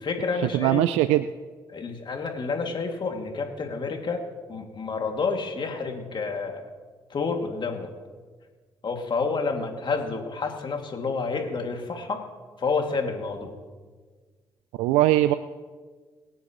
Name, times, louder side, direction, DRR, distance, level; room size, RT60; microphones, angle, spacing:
voice 1, 0.0-0.8 1.7-4.2 4.5-6.7 7.1-7.9 8.8-12.2 12.6-13.5, left 4 dB, 50° left, 3 dB, 2.6 m, -29 dB
voice 2, 0.5-1.2 14.8-15.3, right 15 dB, 80° right, 13 dB, 0.4 m, -20 dB
24.0 x 9.1 x 3.2 m, 1.5 s
hypercardioid pair, 45°, 10 cm